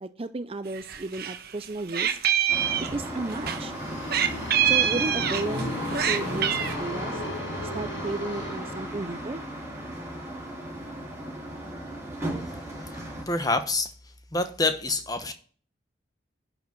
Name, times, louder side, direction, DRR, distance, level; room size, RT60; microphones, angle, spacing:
voice 1, 0.0-2.2 2.8-3.7 4.6-7.2 7.7-9.4, right 2 dB, 30° right, 12 dB, 0.5 m, -34 dB
Meow, 0.8-1.4 1.6-3.6 4.1-5.6 5.9-6.7, right 9 dB, 50° right, 1.2 m, -25 dB
sound 1, 2.5-13.2, right 1 dB, 15° right, 4.2 m, -35 dB
sound 2, 3.5-9.3, left 2 dB, 65° left, 1.0 m, -37 dB
voice 2, 13.3-13.9 14.3-15.3, left 3 dB, 20° left, 8 dB, 1.2 m, -26 dB
11.0 x 5.0 x 6.1 m, 0.43 s
head